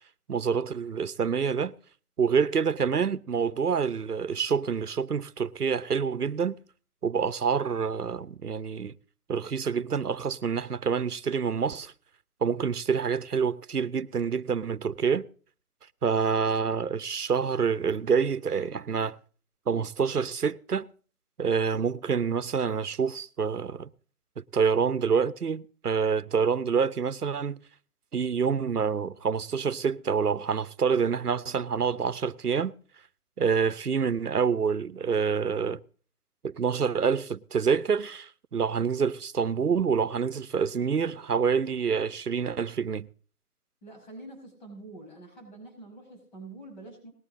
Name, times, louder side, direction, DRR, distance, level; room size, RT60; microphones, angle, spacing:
voice 1, 0.3-1.7 2.2-6.6 7.0-8.9 9.3-11.9 12.4-15.3 16.0-19.2 19.7-20.9 21.4-23.9 24.4-27.6 28.1-32.7 33.4-35.8 36.4-43.1, right 6 dB, 85° right, 0.9 m, -27 dB
voice 2, 43.8-47.1, right 2 dB, 30° left, 5.5 m, -46 dB
19.0 x 10.5 x 3.7 m
figure-of-eight pair, 160°, 45 cm